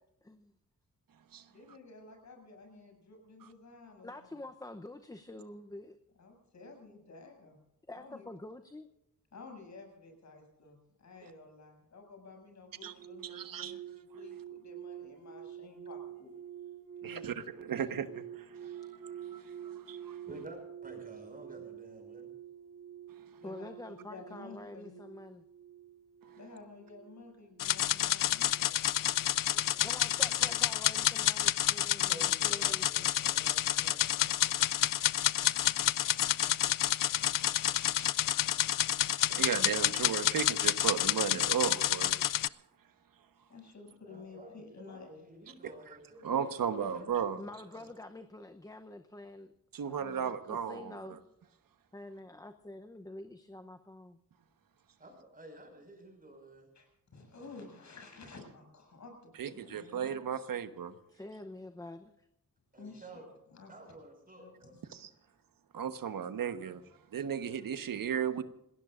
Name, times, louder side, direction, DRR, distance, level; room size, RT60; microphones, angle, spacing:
voice 1, 1.5-4.4 6.2-7.6 7.9-8.3 9.3-16.4 17.0-17.4 23.4-25.0 26.4-28.8 42.3-42.6 43.5-45.1 56.8-60.2 62.7-63.2 63.5-63.9 64.4-64.9, left 3 dB, 55° left, 7.0 m, -52 dB
voice 2, 4.0-6.0 7.9-8.9 23.4-25.4 29.5-33.1 47.4-49.5 49.9-51.1 51.9-54.2 61.1-62.3, left 2 dB, 10° left, 0.7 m, -47 dB
sound 1, 12.8-30.1 30.4-30.8, right 10 dB, 55° right, 1.1 m, -48 dB
voice 3, 13.2-13.8 17.0-20.2 26.3-26.4 35.4-36.1 36.4-36.5 36.8-38.1 39.1-42.2 46.2-47.4 49.7-51.2 59.4-61.0 64.9-65.1 65.7-66.8 67.1-68.4, right 8 dB, 85° right, 1.2 m, -36 dB
voice 4, 20.3-20.6 20.8-22.3 29.7-30.6 32.0-34.6 44.1-46.4 46.6-47.0 47.7-47.8 55.0-56.7 62.7-63.3 63.7-64.7, right 1 dB, 25° right, 5.6 m, -51 dB
sound 2, 27.6-42.5, left 13 dB, 75° left, 0.5 m, -29 dB
27.5 x 19.0 x 2.5 m
wide cardioid pair, 165°, 33 cm